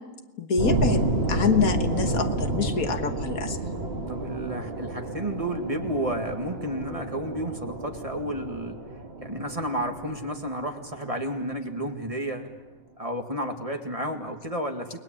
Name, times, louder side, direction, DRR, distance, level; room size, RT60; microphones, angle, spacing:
voice 1, 0.4-1.0 1.3-3.6, left 5 dB, 75° left, 7 dB, 1.9 m, -26 dB
sound 1, 0.6-11.3, right 2 dB, 45° right, 2.5 m, -30 dB
voice 2, 4.1-8.8 9.2-12.5 13.0-15.0, right 1 dB, 25° right, 4 dB, 2.1 m, -31 dB
29.5 x 21.0 x 9.0 m, 1.2 s
omnidirectional pair, 1.5 m